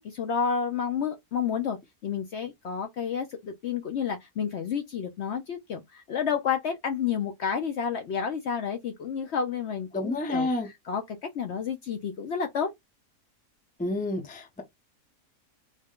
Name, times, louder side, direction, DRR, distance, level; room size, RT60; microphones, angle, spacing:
voice 1, 0.0-10.5 10.9-12.7, left 7 dB, 60° left, 0.8 m, -30 dB
voice 2, 9.9-10.7 13.8-14.6, left 2 dB, 10° left, 0.5 m, -29 dB
3.6 x 2.2 x 3.7 m
omnidirectional pair, 1.5 m